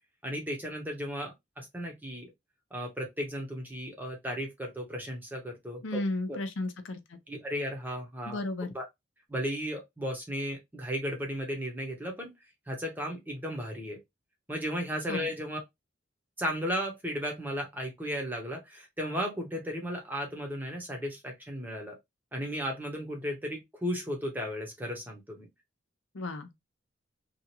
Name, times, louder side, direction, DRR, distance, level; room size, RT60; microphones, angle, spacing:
voice 1, 0.2-2.3 2.7-6.0 6.3-6.4 7.3-8.4 8.7-8.8 9.3-12.3 12.7-14.0 14.5-15.6 16.4-22.0 22.3-25.5, equal, 10° right, 0.7 m, -35 dB
voice 2, 5.8-7.0 8.2-8.7 15.1-15.3 26.1-26.5, left 2 dB, 85° left, 0.6 m, -33 dB
2.8 x 2.4 x 2.8 m
head